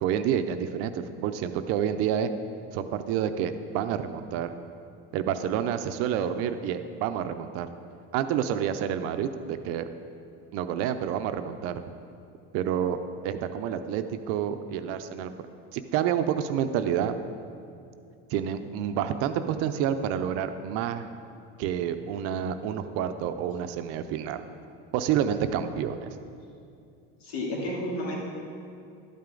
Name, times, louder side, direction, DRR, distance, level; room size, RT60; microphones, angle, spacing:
voice 1, 0.0-2.3 2.7-4.6 5.1-7.7 8.1-9.9 10.5-11.8 12.5-13.0 13.2-15.3 15.7-17.2 18.3-21.1 21.6-24.4 24.9-26.1, right 9 dB, 50° right, 9 dB, 0.5 m, -28 dB
voice 2, 27.2-28.1, left 1 dB, 90° left, -4 dB, 2.8 m, -31 dB
12.0 x 9.0 x 3.8 m, 2.5 s
cardioid pair, 160°, 31 cm